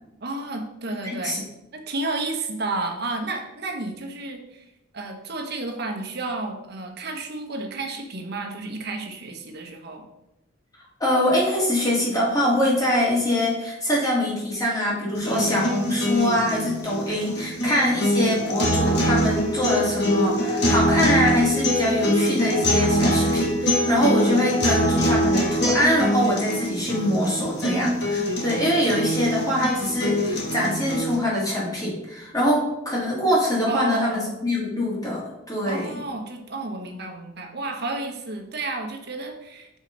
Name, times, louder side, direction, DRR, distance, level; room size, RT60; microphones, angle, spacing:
voice 1, 0.2-1.5 1.7-10.0 33.7-34.5 35.6-39.7, right 2 dB, 55° right, 3 dB, 1.0 m, -31 dB
voice 2, 11.0-35.9, left 1 dB, 20° left, -5 dB, 1.9 m, -23 dB
sound 1, 15.1-31.2, equal, 60° left, 1.3 m, -23 dB
6.4 x 5.1 x 3.8 m, 0.91 s
head